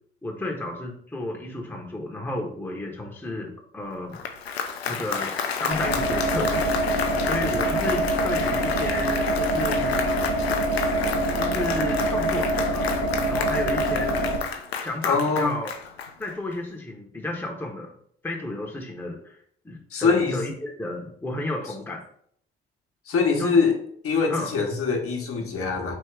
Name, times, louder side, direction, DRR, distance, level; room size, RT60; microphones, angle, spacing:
voice 1, 0.2-4.2 4.9-5.3 5.6-6.7 7.2-9.9 11.4-12.9 13.3-14.2 14.8-15.7 16.2-17.9 18.2-22.0 23.4-23.6 24.3-24.5, left 2 dB, 5° left, 0 dB, 1.0 m, -32 dB
Applause, 4.0-16.5, left 6 dB, 85° left, 0.5 m, -30 dB
sound 1, 5.7-14.4, right 1 dB, 70° right, 1.1 m, -25 dB
voice 2, 15.1-15.5 19.9-20.4 23.1-23.8 24.0-26.0, left 5 dB, 45° left, 1 dB, 1.1 m, -23 dB
3.6 x 2.8 x 4.7 m, 0.64 s
figure-of-eight pair, 50°, 30 cm